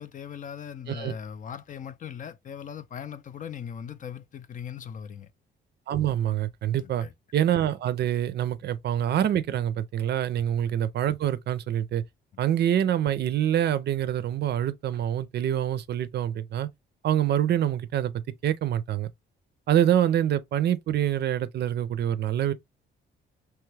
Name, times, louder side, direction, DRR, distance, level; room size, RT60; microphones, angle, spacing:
voice 1, 0.0-5.3 6.8-7.1, left 8 dB, 40° left, 0.4 m, -39 dB
voice 2, 5.9-7.1 7.3-12.0 12.4-16.7 17.0-19.1 19.7-22.5, right 11 dB, 60° right, 0.4 m, -26 dB
3.0 x 2.3 x 3.2 m
cardioid pair, 90°, 20 cm